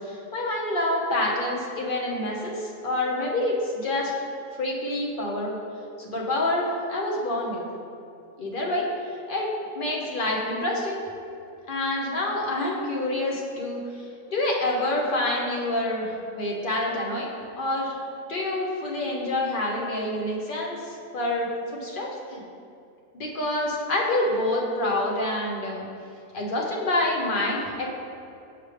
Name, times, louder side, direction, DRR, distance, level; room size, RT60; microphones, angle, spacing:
voice 1, 0.0-4.1 4.6-5.6 6.0-7.6 8.4-8.9 9.3-11.0 11.7-14.1 14.3-17.9 18.3-21.5 21.7-22.4 23.1-25.9 26.3-27.9, left 1 dB, 45° left, -3 dB, 1.0 m, -27 dB
7.0 x 6.2 x 3.3 m, 2.6 s
omnidirectional pair, 1.4 m